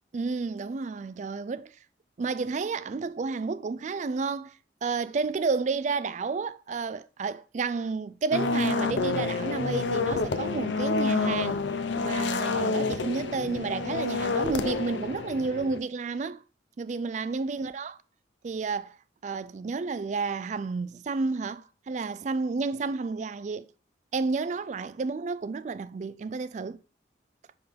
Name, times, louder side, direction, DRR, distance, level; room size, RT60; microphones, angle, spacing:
voice 1, 0.1-1.7 2.2-11.6 12.0-16.4 16.8-17.9 18.4-19.0 19.2-23.7 24.1-26.8, right 4 dB, 40° right, 0.3 m, -31 dB
sound 1, 8.3-15.8, left 3 dB, 75° left, 0.6 m, -28 dB
5.7 x 5.4 x 3.5 m
head